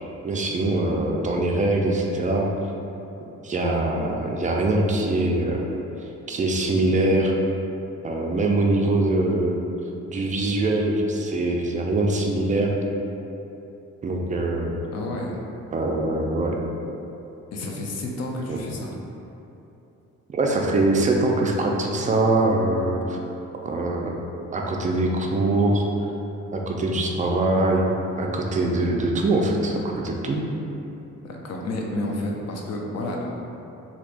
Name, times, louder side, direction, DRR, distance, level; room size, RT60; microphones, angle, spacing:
voice 1, 0.2-2.5 3.4-5.7 6.3-7.3 8.0-9.6 10.1-12.7 14.0-14.7 15.7-16.6 18.5-18.6 20.3-23.2 23.6-24.2 24.5-25.8 26.5-27.9 28.2-30.4, right 2 dB, 25° right, 0 dB, 0.4 m, -23 dB
voice 2, 14.9-15.4 17.5-18.9 31.2-33.4, left 1 dB, 55° left, -1 dB, 0.6 m, -30 dB
3.3 x 2.8 x 2.5 m, 2.9 s
cardioid pair, 90°, 30 cm